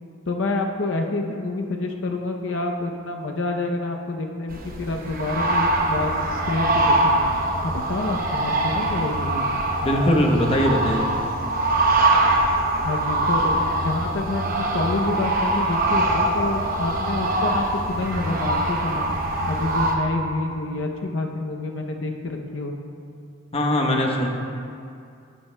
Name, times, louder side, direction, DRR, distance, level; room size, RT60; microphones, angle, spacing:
voice 1, 0.3-6.1 6.5-7.3 7.6-9.5 12.8-19.1 19.5-22.8, left 2 dB, 70° left, 2 dB, 0.7 m, -28 dB
sound 1, 4.5-20.0, right 2 dB, 45° right, 0.8 m, -23 dB
voice 2, 9.8-11.1 23.5-24.3, left 1 dB, 30° left, 0 dB, 0.9 m, -20 dB
13.0 x 9.8 x 2.2 m, 2.4 s
head